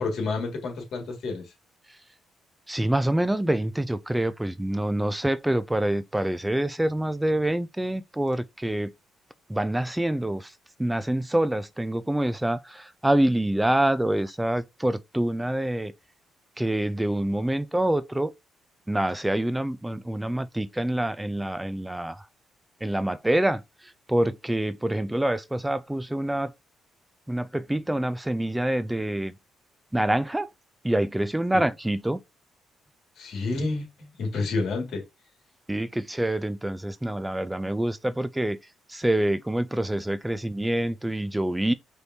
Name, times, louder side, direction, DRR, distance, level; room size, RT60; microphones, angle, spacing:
voice 1, 0.0-1.5 31.5-31.6 33.2-35.0, left 3 dB, 70° left, 1.9 m, -29 dB
voice 2, 2.7-8.9 9.5-10.5 10.8-15.9 16.6-18.3 18.9-22.2 22.8-26.5 27.3-29.3 29.9-30.5 30.8-32.2 35.7-38.6 38.9-41.7, right 1 dB, 10° right, 0.3 m, -26 dB
5.0 x 3.1 x 2.7 m
cardioid pair, 90°, 0 cm